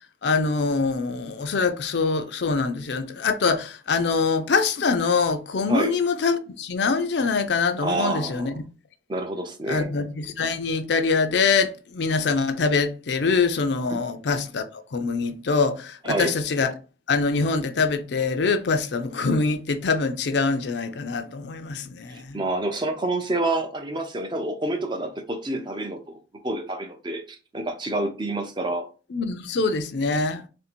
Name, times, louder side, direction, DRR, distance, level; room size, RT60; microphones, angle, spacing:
voice 1, 0.2-8.6 9.7-16.7 17.1-22.4 29.1-30.5, left 4 dB, 65° left, 0.5 m, -24 dB
voice 2, 7.8-8.6 9.1-9.9 13.9-14.0 16.0-16.3 22.1-28.9, right 2 dB, 25° right, 0.5 m, -28 dB
3.2 x 2.6 x 4.3 m
head